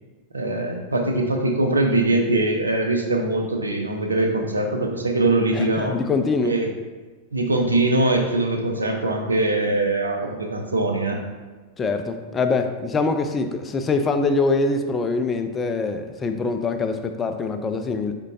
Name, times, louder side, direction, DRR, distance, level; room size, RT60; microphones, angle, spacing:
voice 1, 0.3-6.0 6.4-6.7 7.3-11.2, right 2 dB, 80° right, 2 dB, 0.6 m, -22 dB
voice 2, 5.5-6.6 11.8-18.1, left 3 dB, 20° left, 7 dB, 0.4 m, -24 dB
4.9 x 3.6 x 2.8 m, 1.3 s
figure-of-eight pair, 90°, 0 cm